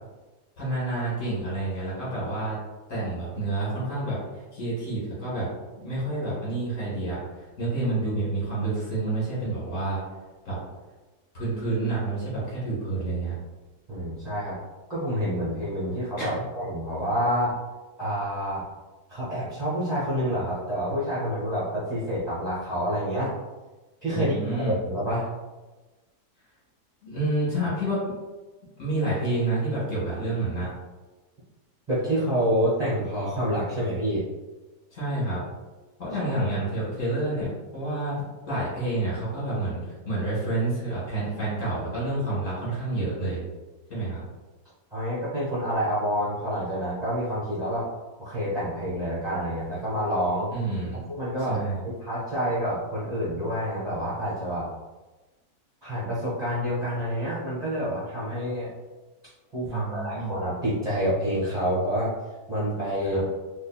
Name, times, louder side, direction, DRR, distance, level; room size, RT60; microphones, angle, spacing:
voice 1, 0.6-2.6 2.9-4.2 4.5-5.5 5.8-10.0 10.5-10.6 11.3-13.4 16.2-16.4 24.1-24.8 27.0-28.2 28.8-30.7 34.9-35.4 36.0-43.4 43.9-44.2 50.5-51.0 51.5-51.9 59.7-60.3 63.0-63.2, right 2 dB, 55° left, -8 dB, 1.9 m, -29 dB
voice 2, 13.9-14.6 14.9-17.5 18.0-18.6 19.1-23.3 24.0-25.3 31.9-34.2 44.0-44.1 44.9-47.8 48.2-50.5 51.1-54.7 55.8-58.7 59.5-62.1 62.5-63.3, equal, 30° right, -10 dB, 1.1 m, -28 dB
3.8 x 2.9 x 2.3 m, 1.2 s
omnidirectional pair, 1.7 m